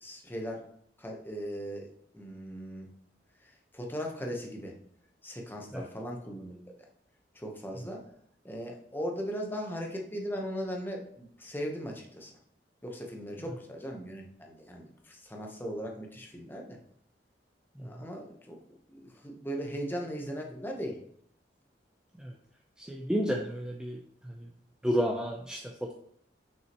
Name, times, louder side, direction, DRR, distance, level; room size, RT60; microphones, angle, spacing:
voice 1, 0.0-0.7 1.0-1.9 2.1-2.9 3.4-4.7 5.2-6.7 7.3-8.0 8.4-12.3 12.8-16.8 17.8-18.6 18.9-21.0, equal, 10° left, 1 dB, 1.0 m, -38 dB
voice 2, 22.9-24.0 24.8-25.9, equal, 5° right, 1 dB, 0.4 m, -31 dB
6.2 x 5.5 x 3.0 m, 0.67 s
head